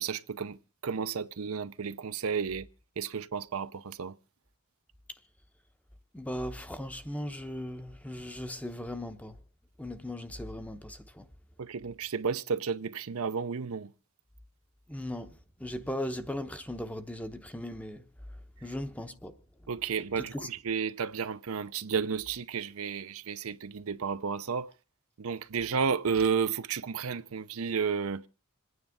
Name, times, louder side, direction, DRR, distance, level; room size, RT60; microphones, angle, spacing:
voice 1, 0.0-2.7 3.0-4.2 11.6-13.9 19.7-24.7 25.2-28.3, right 6 dB, 70° right, 0.6 m, -32 dB
voice 2, 6.1-9.4 9.8-11.3 14.9-18.0 18.6-19.3 20.3-20.5, left 1 dB, 5° left, 0.8 m, -38 dB
27.0 x 9.5 x 3.6 m
head